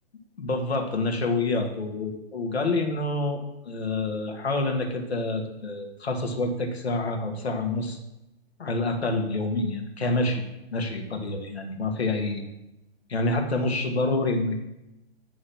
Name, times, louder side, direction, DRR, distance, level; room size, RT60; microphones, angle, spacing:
voice 1, 0.4-8.0 8.6-10.4 10.7-12.4 13.1-14.6, left 2 dB, 75° left, 3 dB, 1.9 m, -27 dB
10.5 x 3.9 x 5.9 m, 0.92 s
figure-of-eight pair, 130°, 32 cm